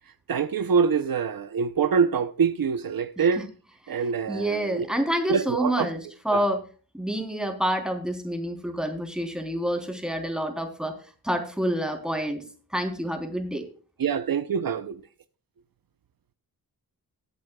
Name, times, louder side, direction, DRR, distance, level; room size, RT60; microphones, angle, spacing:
voice 1, 0.3-3.4 3.9-4.8 5.3-5.9 6.3-6.5 14.0-15.0, right 6 dB, 70° right, 0.8 m, -25 dB
voice 2, 4.3-6.6 6.9-10.9 11.2-12.4 12.7-13.6, right 1 dB, ahead, 3.5 m, -28 dB
20.0 x 8.5 x 2.3 m
cardioid pair, 60°, 37 cm